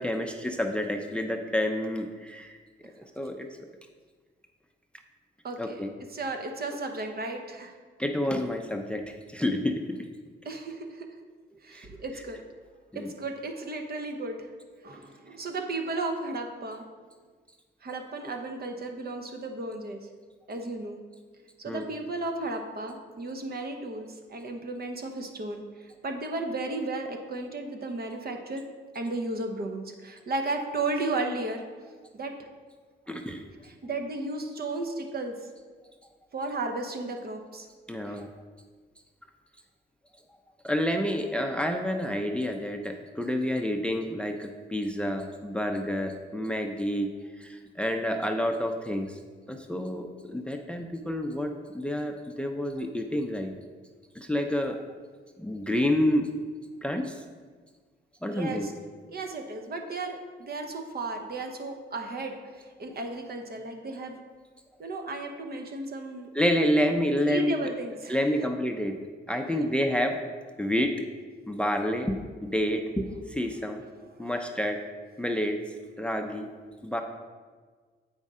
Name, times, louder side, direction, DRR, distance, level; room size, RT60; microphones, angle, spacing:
voice 1, 0.0-2.6 3.0-3.5 5.6-5.9 8.0-10.0 11.7-11.9 12.9-13.1 21.7-21.8 33.1-33.4 37.9-38.3 40.6-47.1 47.4-49.2 49.5-53.5 54.1-54.8 55.4-56.3 56.8-57.2 58.2-58.7 66.3-67.7 68.1-69.0 69.3-70.2 70.6-71.0 71.5-73.8 74.2-74.8 75.2-75.6 76.0-76.5 76.8-77.0, left 1 dB, 5° left, 5 dB, 0.5 m, -29 dB
voice 2, 5.4-5.8 6.1-7.8 10.4-11.1 11.6-12.4 12.9-14.5 14.8-16.8 17.8-20.1 20.5-21.0 21.6-28.6 28.9-31.6 32.1-32.3 33.6-35.3 36.3-37.7 38.0-38.2 58.3-58.7 59.1-64.2 64.8-66.3 67.2-68.5 69.5-69.6 74.2-74.3, right 2 dB, 50° right, 4 dB, 0.9 m, -34 dB
8.1 x 5.2 x 3.7 m, 1.5 s
cardioid pair, 75°, 20 cm